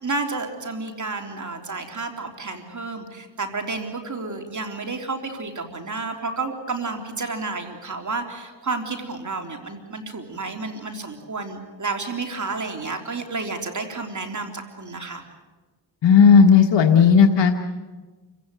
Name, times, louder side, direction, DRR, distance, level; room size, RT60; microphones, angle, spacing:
voice 1, 0.0-15.2, right 3 dB, 40° right, 4 dB, 3.6 m, -31 dB
voice 2, 16.0-17.6, left 6 dB, 75° left, 4 dB, 1.6 m, -13 dB
28.5 x 16.0 x 9.3 m, 1.3 s
cardioid pair, 75°, 44 cm